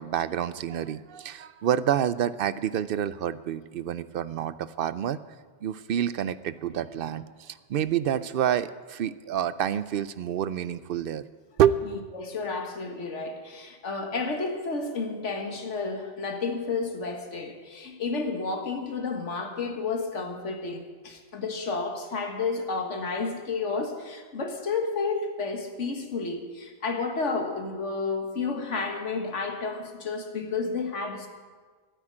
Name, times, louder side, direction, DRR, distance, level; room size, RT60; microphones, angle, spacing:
voice 1, 0.0-5.2 5.6-11.2 11.6-11.9, right 9 dB, 60° right, 15 dB, 0.6 m, -28 dB
voice 2, 12.1-31.3, left 4 dB, 85° left, 4 dB, 1.8 m, -31 dB
12.5 x 9.4 x 8.6 m, 1.5 s
omnidirectional pair, 1.2 m